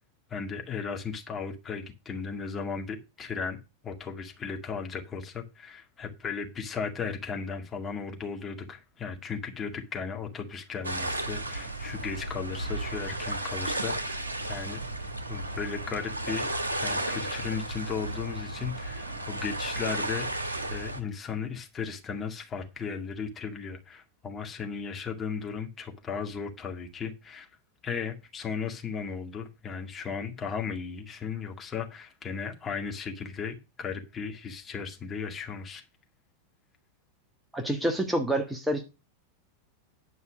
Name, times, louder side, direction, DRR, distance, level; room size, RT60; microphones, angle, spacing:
voice 1, 0.3-3.6 3.8-14.8 15.3-16.5 16.8-20.3 20.6-27.5 27.8-35.8, left 6 dB, 20° left, 2.0 m, -36 dB
sound 1, 10.8-21.0, right 1 dB, 80° right, 1.2 m, -33 dB
voice 2, 37.5-38.8, right 1 dB, 5° right, 1.4 m, -27 dB
10.0 x 5.5 x 6.4 m
figure-of-eight pair, 90°, 0 cm